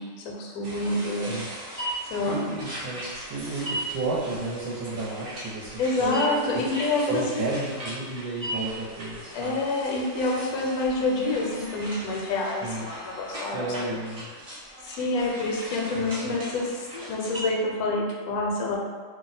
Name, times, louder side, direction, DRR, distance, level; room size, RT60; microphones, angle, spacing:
voice 1, 0.0-1.3 2.1-2.4 5.8-7.4 9.3-13.6 14.8-18.8, left 2 dB, 75° left, -1 dB, 1.1 m, -27 dB
sound 1, 0.6-17.4, right 1 dB, 50° right, 0.4 m, -38 dB
voice 2, 2.3-6.1 6.5-6.7 7.0-9.6 12.6-12.9 13.5-14.3 15.9-16.6, right 2 dB, 75° right, -7 dB, 1.1 m, -32 dB
Keyboard (musical), 6.0-8.1, right 2 dB, 5° left, 0.6 m, -41 dB
2.8 x 2.1 x 3.9 m, 1.5 s
omnidirectional pair, 1.6 m